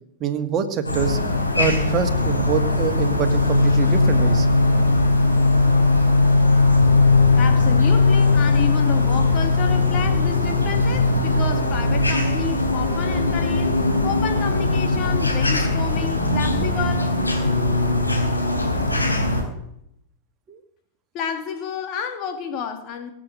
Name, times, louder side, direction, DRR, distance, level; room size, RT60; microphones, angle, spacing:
voice 1, 0.2-1.2 1.6-4.5 4.8-4.9 20.5-20.6, right 7 dB, 30° right, 2.0 m, -25 dB
sound 1, 0.8-19.4, left 2 dB, 85° left, 4.7 m, -19 dB
voice 2, 7.4-17.5 21.1-23.1, left 7 dB, 40° left, 2.7 m, -30 dB
23.0 x 7.8 x 7.9 m
figure-of-eight pair, 90°, 0 cm